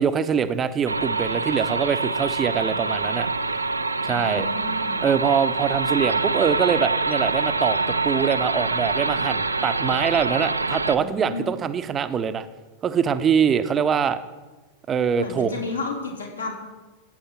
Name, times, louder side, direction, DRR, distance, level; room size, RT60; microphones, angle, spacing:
voice 1, 0.0-3.3 4.0-4.5 5.0-12.5 12.8-14.2 14.9-15.6, right 7 dB, 25° right, 12 dB, 0.8 m, -23 dB
sound 1, 0.9-11.0, right 3 dB, 80° right, 0.6 m, -25 dB
voice 2, 4.1-5.0 11.0-11.5 15.2-16.5, left 3 dB, 75° left, -2 dB, 4.0 m, -32 dB
15.5 x 8.8 x 5.9 m, 1.2 s
figure-of-eight pair, 90°, 0 cm